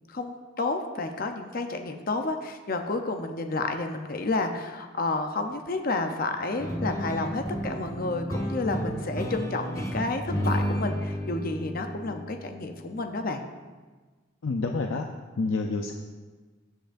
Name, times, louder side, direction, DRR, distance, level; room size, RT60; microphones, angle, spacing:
voice 1, 0.1-13.4, left 3 dB, 45° left, 5 dB, 0.7 m, -30 dB
sound 1, 6.6-13.2, equal, 15° left, 0.9 m, -32 dB
voice 2, 14.4-15.1 15.4-15.9, left 3 dB, 85° left, 3 dB, 0.6 m, -28 dB
15.5 x 7.8 x 2.6 m, 1.3 s
head